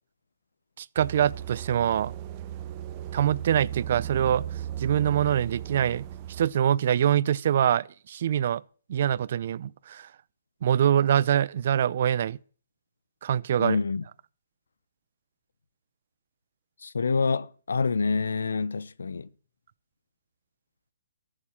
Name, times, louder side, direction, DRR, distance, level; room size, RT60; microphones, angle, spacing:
voice 1, 0.8-2.1 3.1-4.4 4.8-6.0 6.4-8.6 8.9-10.1 10.6-12.4 13.2-13.8, right 10 dB, 50° right, 0.6 m, -24 dB
sound 1, 1.0-6.5, right 11 dB, 30° right, 1.1 m, -36 dB
voice 2, 13.6-14.0 16.8-19.3, left 4 dB, 90° left, 0.8 m, -27 dB
14.0 x 7.5 x 8.7 m
hypercardioid pair, 160°, 0 cm